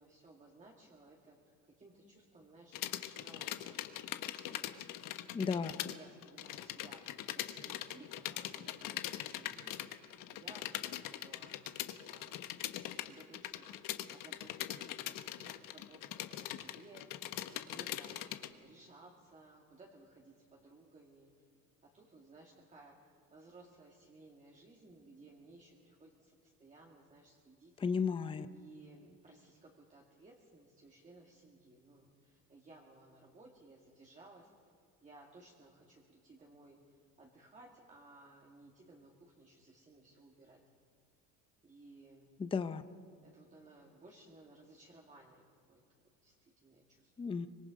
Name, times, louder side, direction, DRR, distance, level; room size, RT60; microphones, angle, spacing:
voice 1, 0.0-3.8 4.3-4.9 5.4-11.6 12.0-13.8 14.1-17.4 17.7-21.3 21.8-28.0 28.4-34.5 35.0-40.6 41.6-42.3 43.2-45.8 46.2-47.3, right 2 dB, 20° right, -2 dB, 2.3 m, -59 dB
sound 1, 2.7-6.0 6.2-18.5, left 13 dB, 65° left, 1.2 m, -42 dB
voice 2, 5.3-5.7 27.8-28.5 42.4-42.8 47.2-47.5, left 5 dB, 15° left, 12 dB, 0.6 m, -34 dB
25.0 x 22.0 x 5.2 m, 2.3 s
cardioid pair, 135°, 35 cm